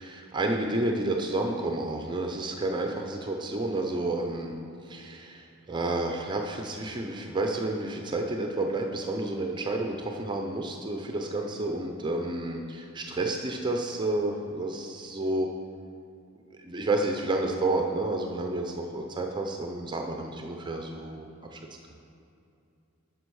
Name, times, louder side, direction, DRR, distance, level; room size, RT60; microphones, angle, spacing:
voice 1, 0.0-4.6 4.8-15.5 16.6-21.6, right 2 dB, 20° right, 2 dB, 0.5 m, -30 dB
9.5 x 6.2 x 4.7 m, 2.7 s
head